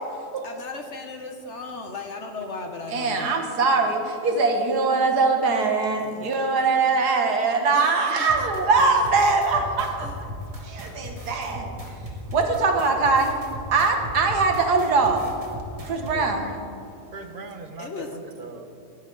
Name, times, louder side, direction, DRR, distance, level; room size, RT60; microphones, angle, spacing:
voice 1, 0.4-3.4 6.0-6.3 7.7-8.3 10.0-10.1 17.8-18.2, left 4 dB, 50° left, 1.1 m, -36 dB
voice 2, 2.9-10.1 10.6-11.7 12.3-13.4 13.7-15.2 15.8-16.5, right 4 dB, 80° right, 1.9 m, -22 dB
sound 1, 8.3-16.2, equal, 20° right, 1.7 m, -37 dB
voice 3, 16.1-16.6 17.1-18.7, right 3 dB, 40° right, 1.0 m, -40 dB
17.0 x 12.0 x 3.9 m
omnidirectional pair, 1.7 m